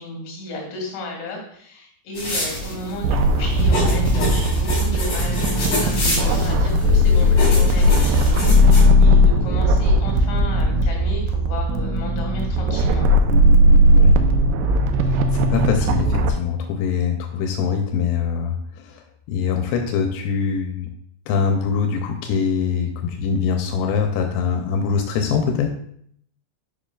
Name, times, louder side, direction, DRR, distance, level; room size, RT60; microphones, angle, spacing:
voice 1, 0.0-13.1, left 1 dB, 65° left, 0 dB, 4.1 m, -33 dB
sound 1, 2.1-8.8, left 1 dB, 40° left, 3.3 m, -27 dB
sound 2, 3.0-16.3, equal, 85° right, 3.1 m, -17 dB
voice 2, 15.0-19.0 19.3-20.9 21.3-25.7, left 6 dB, 90° left, 4 dB, 3.3 m, -23 dB
7.5 x 6.8 x 2.3 m, 0.66 s
omnidirectional pair, 5.7 m